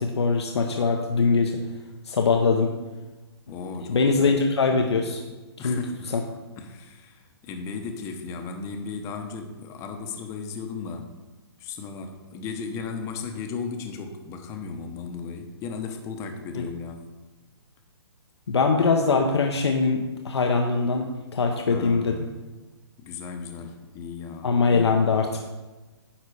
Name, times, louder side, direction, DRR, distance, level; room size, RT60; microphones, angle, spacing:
voice 1, 0.0-1.6 2.0-2.7 3.9-5.2 5.6-5.8 6.1-6.2 16.5-16.6 18.5-22.1 24.4-25.4, left 4 dB, 85° left, 3 dB, 0.9 m, -22 dB
voice 2, 3.5-4.4 5.6-6.1 6.6-11.1 11.6-17.1 21.7-22.2 23.0-24.6, left 5 dB, 20° left, 5 dB, 0.9 m, -36 dB
10.0 x 4.1 x 6.3 m, 1.2 s
hypercardioid pair, 145°, 14 cm